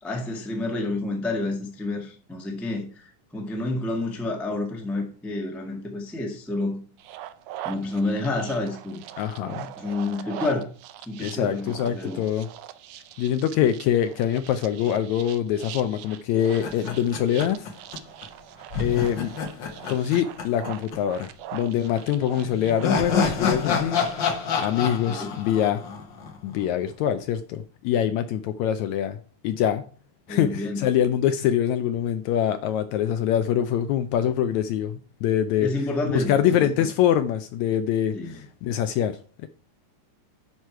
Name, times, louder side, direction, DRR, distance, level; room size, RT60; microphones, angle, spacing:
voice 1, 0.0-6.8 7.6-9.0 9.4-10.7 11.1-12.2 25.1-25.3 30.3-30.9 35.6-36.6 38.1-38.4, left 2 dB, ahead, 0.6 m, -29 dB
sound 1, 7.0-24.7, right 12 dB, 80° right, 1.5 m, -42 dB
voice 2, 9.2-9.7 11.2-12.5 13.2-17.7 18.8-19.3 19.9-24.0 24.6-25.8 26.4-29.2 29.4-29.9 30.3-35.7 36.1-39.5, left 10 dB, 80° left, 1.7 m, -24 dB
sound 2, 16.6-18.0 18.2-18.3 18.7-21.0 21.2-21.3 22.3-26.6, left 5 dB, 60° left, 1.2 m, -28 dB
11.0 x 4.8 x 4.6 m
omnidirectional pair, 3.7 m